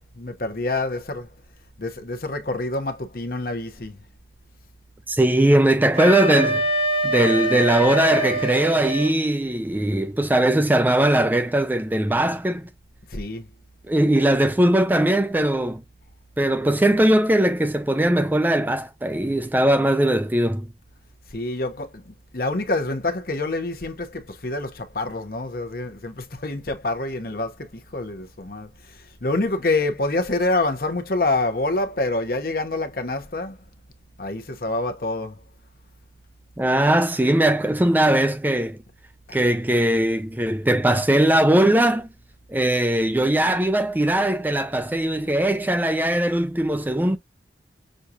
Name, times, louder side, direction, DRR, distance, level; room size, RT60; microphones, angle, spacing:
voice 1, 0.2-1.3 1.8-4.0 13.1-13.5 21.3-22.0 22.3-28.7 29.2-33.6 34.2-35.4, left 2 dB, 55° left, 0.9 m, -26 dB
voice 2, 5.1-6.7 7.0-12.7 13.9-15.8 16.4-20.7 36.6-38.8 39.3-42.1 42.5-47.2, right 1 dB, 10° right, 0.4 m, -20 dB
Wind instrument woodwind instrument, 5.9-9.1, right 2 dB, 35° right, 0.9 m, -24 dB
6.4 x 2.4 x 2.7 m
head